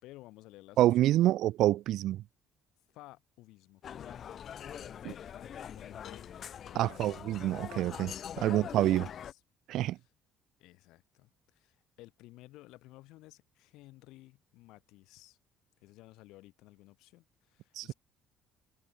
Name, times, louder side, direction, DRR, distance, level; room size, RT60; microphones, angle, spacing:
voice 1, 0.0-1.3 2.9-4.4 4.8-6.3 6.6-7.1 8.4-9.4 9.9-10.1 10.6-15.4 15.8-17.9, left 18 dB, 80° left, 6.3 m, -55 dB
voice 2, 0.8-2.2 6.8-9.1 9.7-10.0 17.8-17.9, right 14 dB, 60° right, 0.3 m, -27 dB
sound 1, 3.8-9.3, left 9 dB, 40° left, 7.5 m, -43 dB
cardioid pair, 165°, 0 cm